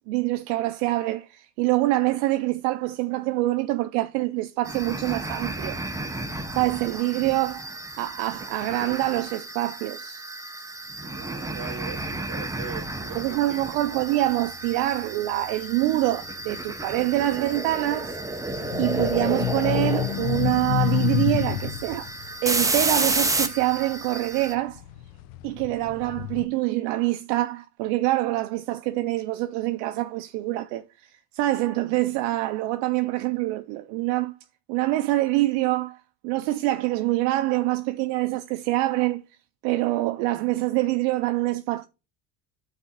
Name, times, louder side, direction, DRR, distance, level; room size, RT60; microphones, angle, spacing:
voice 1, 0.1-5.8 6.5-7.7 8.0-10.2 13.1-18.2 18.8-22.1 22.4-24.8 25.4-34.3 34.7-36.0 36.2-39.2 39.6-41.8, right 17 dB, 70° right, 0.5 m, -25 dB
sound 1, 4.7-24.5, right 2 dB, 5° right, 0.7 m, -31 dB
voice 2, 11.0-13.6 13.9-14.0, right 7 dB, 40° right, 1.4 m, -40 dB
sound 2, 12.3-22.2, left 7 dB, 35° left, 1.8 m, -53 dB
sound 3, 18.5-24.1 24.6-26.4, left 13 dB, 80° left, 0.6 m, -28 dB
11.5 x 4.1 x 2.9 m
supercardioid pair, 85°, 46 cm